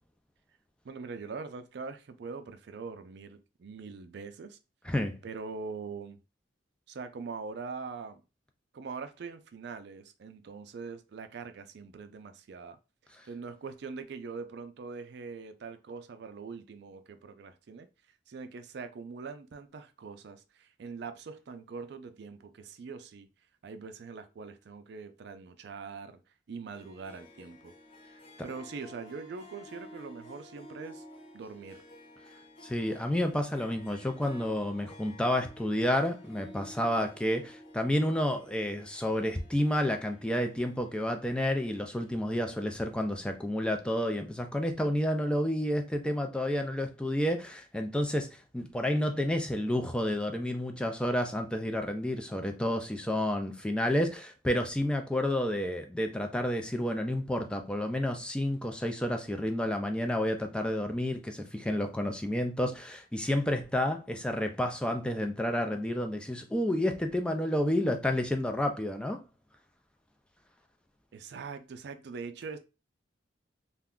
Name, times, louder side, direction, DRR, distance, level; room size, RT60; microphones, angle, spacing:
voice 1, 0.8-4.6 5.2-6.2 6.9-8.2 8.7-12.8 13.2-17.9 18.3-23.3 23.6-26.2 26.5-27.7 28.4-31.0 31.3-31.8 71.1-72.6, right 4 dB, 65° right, 0.4 m, -42 dB
voice 2, 4.8-5.2 32.6-69.2, left 1 dB, 5° left, 0.3 m, -30 dB
Harp, 26.7-43.5, left 1 dB, 35° left, 0.7 m, -53 dB
2.4 x 2.2 x 3.5 m
head